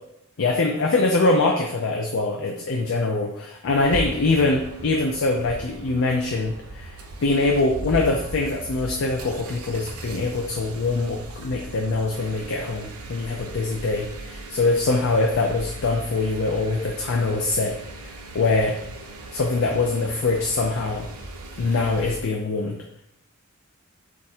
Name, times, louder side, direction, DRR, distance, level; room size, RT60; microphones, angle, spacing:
voice 1, 0.4-17.8 18.0-18.8 19.3-21.1 21.6-22.8, left 3 dB, 60° left, 1 dB, 0.5 m, -23 dB
sound 1, 3.7-22.2, right 1 dB, 75° right, 0.6 m, -38 dB
4.3 x 2.5 x 4.2 m, 0.79 s
head